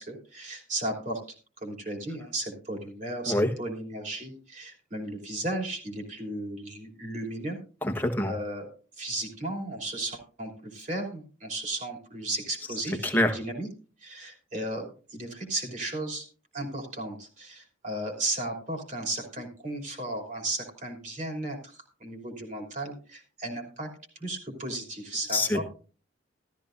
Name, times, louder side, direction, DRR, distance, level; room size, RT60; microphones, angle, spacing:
voice 1, 0.0-7.6 8.3-8.7 9.0-13.7 14.0-16.2 16.5-23.9 24.1-25.6, right 1 dB, 40° right, 2 dB, 3.3 m, -35 dB
voice 2, 7.8-8.3 13.0-13.3 25.3-25.6, left 1 dB, 10° left, 3 dB, 1.2 m, -25 dB
14.0 x 13.5 x 2.6 m, 0.36 s
head